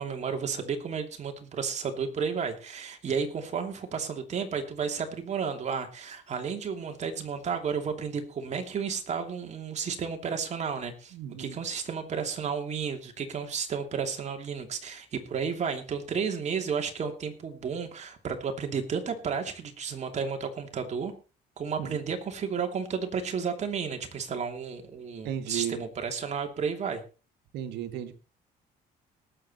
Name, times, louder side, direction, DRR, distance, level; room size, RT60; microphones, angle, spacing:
voice 1, 0.0-21.1 21.6-27.0, right 6 dB, 40° right, 5 dB, 2.8 m, -32 dB
voice 2, 11.1-11.6 21.8-22.0 25.2-25.8 27.5-28.1, right 10 dB, 80° right, 8 dB, 1.9 m, -34 dB
18.5 x 7.7 x 4.3 m, 0.34 s
cardioid pair, 110°, 17 cm